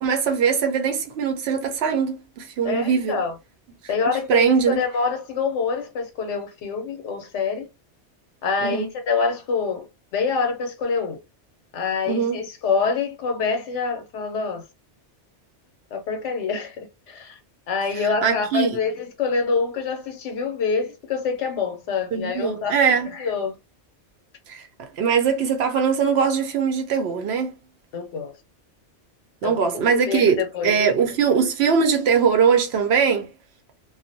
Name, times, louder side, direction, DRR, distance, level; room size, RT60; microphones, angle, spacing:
voice 1, 0.0-3.2 4.1-4.8 8.6-8.9 12.1-12.5 17.9-18.8 22.1-23.1 24.5-27.5 29.4-33.3, right 6 dB, 65° right, 0.8 m, -21 dB
voice 2, 2.6-3.3 3.9-7.7 8.4-9.8 10.1-11.2 11.7-14.6 15.9-16.8 17.1-17.3 17.7-22.7 23.1-23.5 27.9-28.3 29.4-29.6 29.9-30.7, left 5 dB, 80° left, 0.9 m, -26 dB
2.4 x 2.0 x 2.5 m
omnidirectional pair, 1.2 m